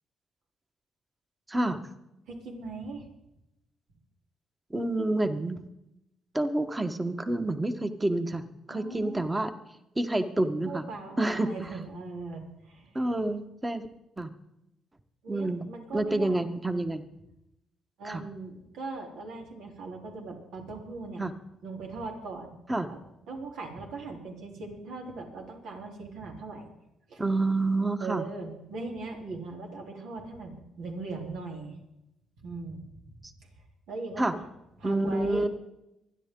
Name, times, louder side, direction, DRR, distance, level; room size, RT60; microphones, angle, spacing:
voice 1, 1.5-1.8 4.7-5.6 6.3-9.5 10.0-10.8 11.2-11.5 12.9-13.9 14.2-14.3 15.3-15.7 15.9-17.0 18.0-18.2 21.2-21.3 22.7-22.9 27.2-28.2 34.2-34.3 34.8-35.5, right 2 dB, 15° right, 9 dB, 1.3 m, -28 dB
voice 2, 2.3-3.1 8.7-9.4 10.6-12.9 15.2-16.4 18.0-21.2 21.6-22.6 22.9-23.0 23.3-26.7 27.1-27.2 28.0-31.8 32.4-32.8 33.2-33.3 33.9-34.3 34.8-35.5, right 3 dB, 80° right, 1 dB, 3.3 m, -39 dB
26.0 x 10.0 x 3.8 m, 0.88 s
cardioid pair, 90°, 0 cm